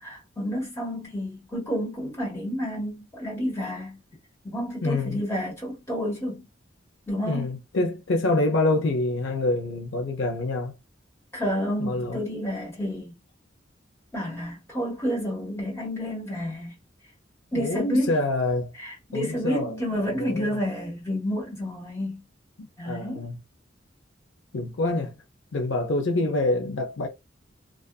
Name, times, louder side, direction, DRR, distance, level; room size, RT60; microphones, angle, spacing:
voice 1, 0.0-4.0 4.4-6.5 7.1-7.6 11.3-13.2 14.1-16.7 17.5-18.2 18.8-22.2 22.8-23.2, equal, 15° left, 1.3 m, -30 dB
voice 2, 4.8-5.2 7.2-10.8 11.8-12.2 17.5-18.7 19.1-20.6 22.6-23.4 24.5-25.2 25.5-27.1, left 2 dB, 75° left, 0.5 m, -26 dB
2.6 x 2.3 x 2.2 m
head